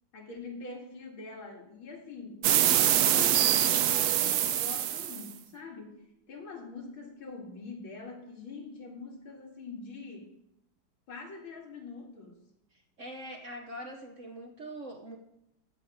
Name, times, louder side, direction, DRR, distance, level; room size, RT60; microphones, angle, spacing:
voice 1, 0.1-10.3 11.1-12.4, left 4 dB, 75° left, 0 dB, 2.9 m, -44 dB
sound 1, 2.4-5.3, right 11 dB, 70° right, 0.9 m, -24 dB
voice 2, 13.0-15.2, right 1 dB, 45° right, 3 dB, 1.1 m, -42 dB
14.5 x 5.3 x 7.1 m, 0.82 s
omnidirectional pair, 2.2 m